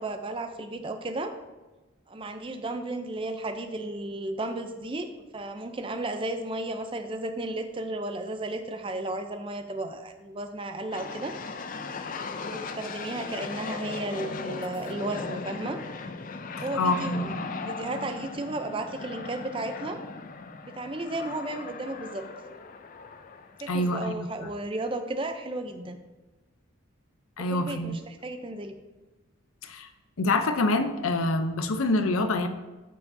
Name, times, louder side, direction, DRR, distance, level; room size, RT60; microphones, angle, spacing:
voice 1, 0.0-1.3 2.1-5.1 5.3-11.3 12.4-15.8 16.6-17.3 17.6-20.0 20.6-22.2 23.6-26.0 27.4-28.7, right 2 dB, 25° right, 7 dB, 0.5 m, -34 dB
sound 1, 10.9-24.0, left 4 dB, 40° left, 0.4 m, -38 dB
voice 2, 16.8-17.4 23.7-24.5 27.4-28.0 29.6-29.9 30.2-32.5, left 2 dB, 90° left, 8 dB, 0.6 m, -26 dB
14.0 x 4.7 x 2.7 m, 1.2 s
head